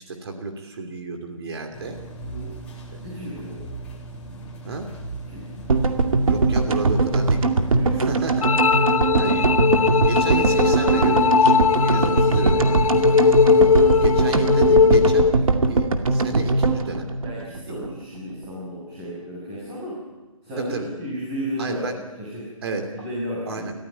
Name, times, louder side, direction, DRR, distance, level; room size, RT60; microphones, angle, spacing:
voice 1, 0.0-2.0 2.9-3.2 4.6-4.9 6.3-7.5 8.0-8.5 8.8-9.5 10.0-12.8 13.4-17.1 17.6-17.8 20.6-20.9 21.6-22.0 22.6-23.0 23.5-23.7, right 3 dB, 45° right, 4 dB, 3.0 m, -31 dB
sound 1, 1.7-14.1, right 2 dB, 5° left, 3.5 m, -38 dB
voice 2, 2.2-2.5 3.0-3.7 5.3-5.5 7.7-8.0 12.2-12.4 17.2-20.0 20.4-21.9 22.2-22.5 22.9-23.6, equal, 15° right, -5 dB, 6.9 m, -33 dB
sound 2, 5.7-17.9 18.2-18.3 18.4-18.5, right 3 dB, 80° right, 2.4 m, -21 dB
sound 3, 8.4-15.4, left 6 dB, 80° left, 0.9 m, -19 dB
29.5 x 15.0 x 9.6 m, 1.2 s
hypercardioid pair, 165°, 17 cm